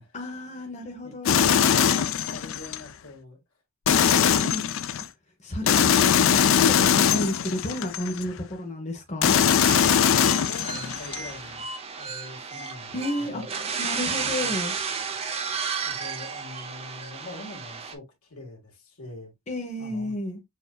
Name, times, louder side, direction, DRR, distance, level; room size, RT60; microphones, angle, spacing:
voice 1, 0.1-1.6 4.2-4.7 5.4-9.4 12.9-13.4 13.8-14.7 19.5-20.4, left 2 dB, 30° left, 0.9 m, -31 dB
voice 2, 1.0-3.4 9.3-11.7 11.9-13.0 13.3-13.5 14.1-14.5 15.8-19.3 19.8-20.1, left 2 dB, 85° left, 1.8 m, -44 dB
sound 1, 1.3-2.8 3.9-5.1 5.7-8.2 9.2-11.2, left 8 dB, 65° left, 0.4 m, -21 dB
sound 2, 9.6-17.9, right 5 dB, 30° right, 0.5 m, -33 dB
6.5 x 2.7 x 2.3 m
head